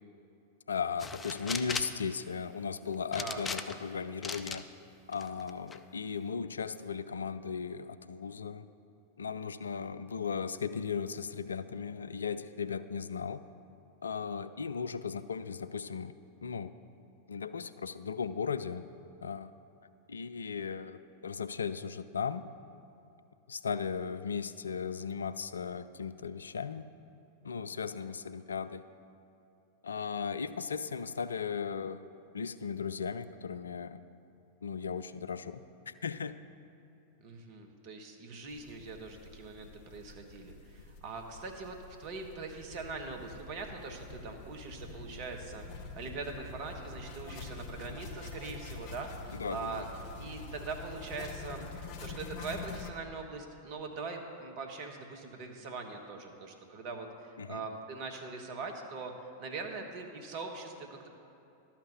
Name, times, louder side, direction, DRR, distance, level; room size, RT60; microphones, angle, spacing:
voice 1, 0.7-4.7 5.1-8.6 9.2-13.4 14.0-16.1 16.4-16.7 17.3-18.9 19.2-19.5 20.1-22.4 23.5-26.9 27.4-28.8 29.8-32.0 32.3-34.0 34.6-36.4 49.3-49.9 57.4-57.7, left 6 dB, 70° left, 13 dB, 0.3 m, -37 dB
sound 1, 1.0-2.0 3.1-3.9 4.2-4.6 5.1-5.8, left 4 dB, 15° left, 0.5 m, -38 dB
voice 2, 37.2-49.8 50.2-61.1, right 4 dB, 45° right, 4 dB, 1.3 m, -42 dB
sound 2, 38.5-52.9, left 4 dB, 45° left, 0.8 m, -46 dB
12.0 x 5.8 x 6.8 m, 2.8 s
figure-of-eight pair, 90°, 0 cm